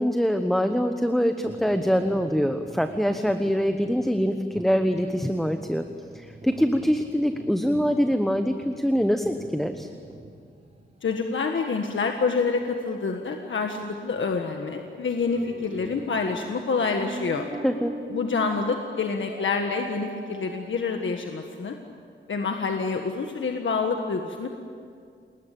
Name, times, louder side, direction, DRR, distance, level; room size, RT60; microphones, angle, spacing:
voice 1, 0.0-5.9 6.1-9.9 17.6-17.9, equal, ahead, 7 dB, 1.0 m, -24 dB
sound 1, 1.4-11.2 11.8-11.9 12.6-12.8 13.1-13.3 14.0-14.5 14.8-18.2, right 1 dB, 30° right, 4.6 m, -46 dB
voice 2, 11.0-17.5 18.1-21.8 22.3-24.5, left 4 dB, 75° left, 3 dB, 1.6 m, -27 dB
sound 2, 15.3-20.6, right 2 dB, 55° right, 3.5 m, -40 dB
29.0 x 20.5 x 8.5 m, 2.3 s
wide cardioid pair, 130°, 20 cm